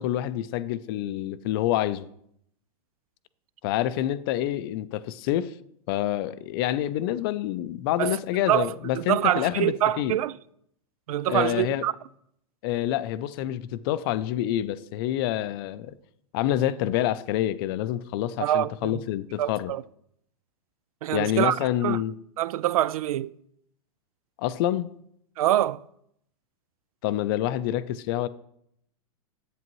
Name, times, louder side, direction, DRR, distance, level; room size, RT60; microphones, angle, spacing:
voice 1, 0.0-2.1 3.6-5.5 5.9-10.1 11.3-11.9 12.6-15.9 16.3-19.7 21.1-22.1 24.4-24.9 27.0-28.3, left 13 dB, 40° left, 0.4 m, -27 dB
voice 2, 8.5-10.3 11.1-11.9 18.4-19.0 19.4-19.8 21.0-22.0 22.4-23.3 25.4-25.8, right 12 dB, 75° right, 0.4 m, -25 dB
11.0 x 8.5 x 3.0 m
hypercardioid pair, 145°, 18 cm